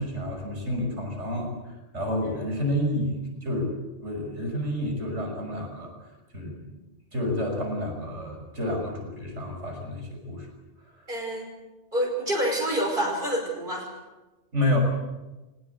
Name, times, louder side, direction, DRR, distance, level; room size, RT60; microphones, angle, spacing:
voice 1, 0.0-1.5 1.9-5.9 6.3-6.6 7.1-10.5 14.5-14.8, left 1 dB, 85° right, 2 dB, 6.1 m, -29 dB
voice 2, 11.1-11.5 11.9-13.9, right 1 dB, 45° right, 1 dB, 5.6 m, -27 dB
23.0 x 20.0 x 8.1 m, 1.1 s
omnidirectional pair, 1.2 m